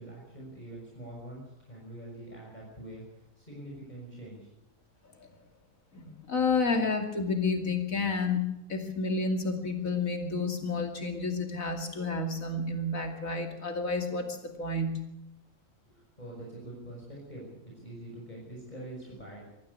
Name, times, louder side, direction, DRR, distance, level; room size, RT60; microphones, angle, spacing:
voice 1, 0.0-4.5 15.9-19.4, right 1 dB, 30° left, -3 dB, 6.4 m, -45 dB
voice 2, 5.9-15.0, left 3 dB, 85° left, 4 dB, 3.0 m, -30 dB
24.0 x 14.0 x 8.3 m, 0.86 s
omnidirectional pair, 1.4 m